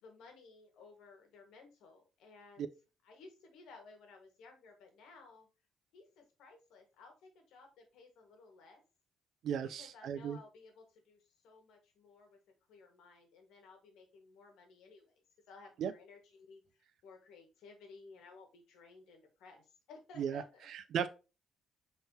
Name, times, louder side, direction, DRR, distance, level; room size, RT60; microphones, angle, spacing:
voice 1, 0.0-2.7 3.0-5.5 5.9-8.8 9.8-12.4 12.7-20.7, left 4 dB, 80° left, 1.4 m, -57 dB
voice 2, 9.4-10.4 15.8-15.9 20.2-20.4 20.7-21.1, right 8 dB, 55° right, 0.3 m, -36 dB
5.6 x 3.6 x 2.7 m
cardioid pair, 175°, 0 cm